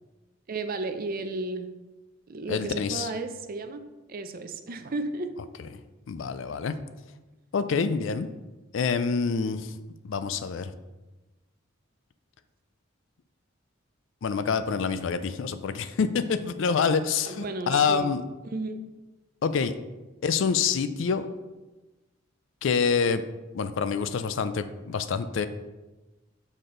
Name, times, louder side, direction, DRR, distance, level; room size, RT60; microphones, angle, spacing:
voice 1, 0.5-1.7 2.3-3.8 4.1-5.3 17.3-18.2 18.4-18.8, right 3 dB, 45° right, 8 dB, 0.5 m, -33 dB
voice 2, 2.5-3.1 6.1-6.8 7.5-8.3 8.7-9.7 10.0-10.7 14.2-18.2 19.4-19.7 20.2-21.3 22.6-23.2 23.5-25.5, left 5 dB, 70° left, 12 dB, 0.4 m, -26 dB
6.7 x 4.2 x 3.8 m, 1.1 s
head